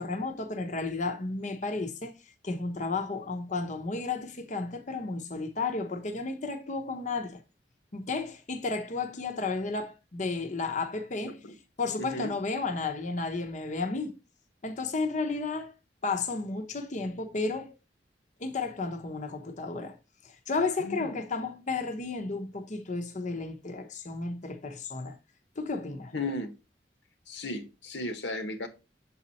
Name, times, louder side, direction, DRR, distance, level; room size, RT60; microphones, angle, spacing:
voice 1, 0.0-2.2 2.4-7.4 7.9-11.4 11.8-14.2 14.6-15.7 16.0-17.7 18.4-19.9 20.2-25.2 25.6-26.1, left 3 dB, 45° left, 0.8 m, -33 dB
voice 2, 12.0-12.3 20.8-21.2 26.1-26.5 27.3-28.7, left 2 dB, 85° left, 1.2 m, -35 dB
7.2 x 4.2 x 4.1 m
head